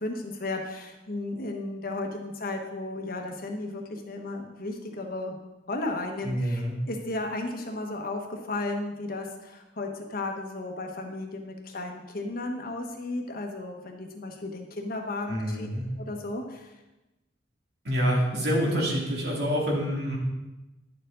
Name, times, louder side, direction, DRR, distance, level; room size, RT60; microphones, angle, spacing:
voice 1, 0.0-5.4 5.7-15.7 16.0-16.7, left 2 dB, 55° left, 3 dB, 1.3 m, -34 dB
voice 2, 6.2-6.8 15.3-15.8 17.8-20.2, equal, 65° right, -2 dB, 2.4 m, -27 dB
10.5 x 7.0 x 3.9 m, 1.0 s
head